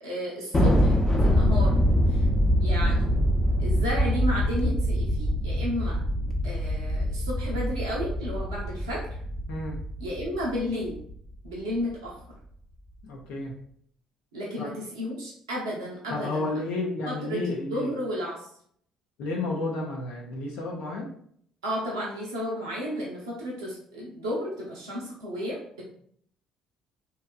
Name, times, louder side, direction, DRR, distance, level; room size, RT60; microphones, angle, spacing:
voice 1, 0.0-1.8 2.1-2.3 2.6-3.1 3.6-6.0 6.4-9.2 10.0-11.0 11.4-12.1 14.3-16.5 17.1-18.4 21.6-25.6, equal, 80° right, -4 dB, 0.6 m, -32 dB
Thunder, 0.5-11.2, equal, 25° left, 0.6 m, -24 dB
voice 2, 13.0-13.5 14.6-14.7 16.1-17.9 19.2-21.1, left 2 dB, 65° left, -2 dB, 0.5 m, -31 dB
2.7 x 2.3 x 2.3 m, 0.63 s
hypercardioid pair, 50°, 2 cm